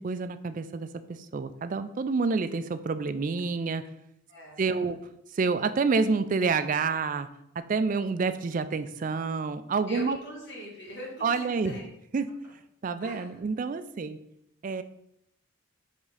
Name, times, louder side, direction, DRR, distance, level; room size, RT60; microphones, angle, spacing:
voice 1, 0.0-3.9 4.6-5.0 5.3-7.3 7.6-10.2 11.2-11.8 12.1-12.3 12.8-14.2 14.6-14.8, right 4 dB, 40° right, 12 dB, 0.3 m, -28 dB
voice 2, 4.3-4.9 9.9-11.9 13.0-13.4, left 1 dB, 55° left, -3 dB, 2.1 m, -41 dB
5.0 x 3.5 x 5.5 m, 0.78 s
head